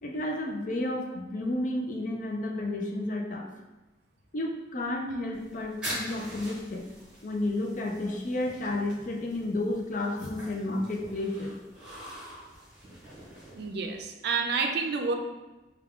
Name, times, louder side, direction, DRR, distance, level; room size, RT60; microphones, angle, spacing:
voice 1, 0.0-3.5 4.3-6.8 7.2-11.5, left 1 dB, 45° left, 1 dB, 0.5 m, -31 dB
sound 1, 5.3-14.0, equal, 5° right, 1.3 m, -44 dB
voice 2, 13.5-15.1, right 4 dB, 65° right, 3 dB, 0.4 m, -29 dB
3.6 x 2.3 x 3.5 m, 1.1 s
head